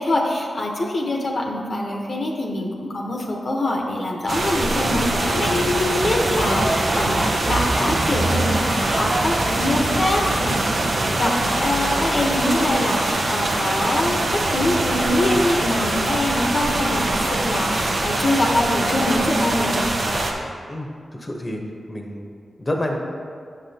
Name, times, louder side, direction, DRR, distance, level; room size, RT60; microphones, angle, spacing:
voice 1, 0.0-19.8, left 1 dB, 60° left, -1 dB, 0.8 m, -24 dB
sound 1, 4.3-20.3, right 2 dB, 70° right, 0.7 m, -23 dB
sound 2, 4.8-11.3, right 3 dB, 45° right, 0.3 m, -28 dB
sound 3, 5.3-11.2, left 4 dB, 90° left, 0.4 m, -32 dB
voice 2, 20.7-21.6 21.9-22.3 22.6-23.0, left 1 dB, 30° left, 1 dB, 0.9 m, -28 dB
7.5 x 6.1 x 2.8 m, 2.2 s
cardioid pair, 45°, 0 cm